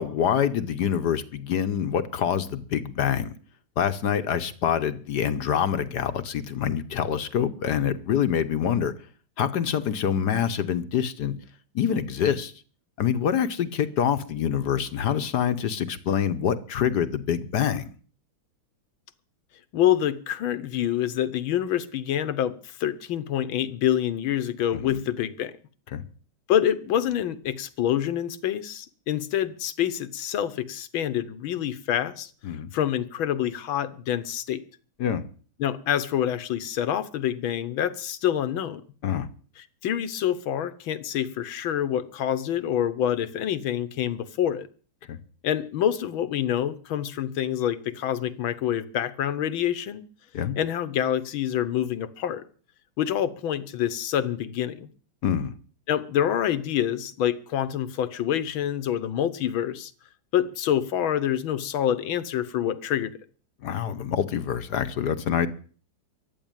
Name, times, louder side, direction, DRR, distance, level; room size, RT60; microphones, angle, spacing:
voice 1, 0.0-3.3 3.8-8.9 9.4-11.4 11.7-12.5 13.0-17.9 24.9-25.0 25.9-26.0 32.4-32.7 35.0-35.2 39.0-39.3 45.1-45.2 50.3-50.6 55.2-55.5 63.6-65.5, left 8 dB, 60° left, 12 dB, 1.4 m, -26 dB
voice 2, 19.7-25.5 26.5-32.3 32.7-34.6 35.6-38.8 39.6-44.7 45.4-50.0 50.6-52.5 53.0-54.9 55.9-59.9 60.3-63.1, left 10 dB, 85° left, 14 dB, 1.8 m, -26 dB
14.5 x 9.8 x 9.0 m, 0.42 s
omnidirectional pair, 2.2 m